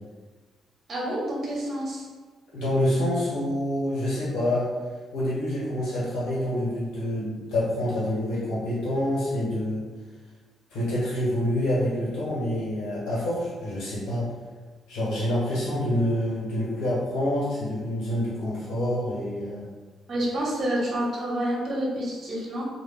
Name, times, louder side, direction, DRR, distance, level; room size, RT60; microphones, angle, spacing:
voice 1, 0.9-2.1 20.1-22.7, right 1 dB, 45° right, -4 dB, 1.0 m, -28 dB
voice 2, 2.5-4.7 5.1-9.8 10.7-14.2 14.9-19.6, left 1 dB, 80° left, -9 dB, 1.4 m, -27 dB
2.4 x 2.4 x 3.7 m, 1.4 s
cardioid pair, 90°, 0 cm